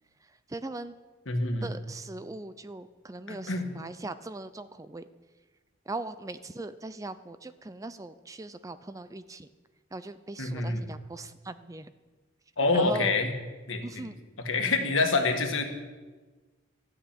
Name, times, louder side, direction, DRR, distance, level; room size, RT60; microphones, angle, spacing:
voice 1, 0.3-0.9 1.6-5.0 5.9-9.5 9.9-11.9 12.7-13.1 13.8-14.2, right 2 dB, 15° right, 13 dB, 0.4 m, -39 dB
voice 2, 1.3-1.7 3.3-3.7 10.4-10.9 12.6-13.3 13.7-14.1 14.4-15.6, left 3 dB, 65° left, 4 dB, 1.5 m, -27 dB
13.0 x 6.2 x 8.9 m, 1.3 s
head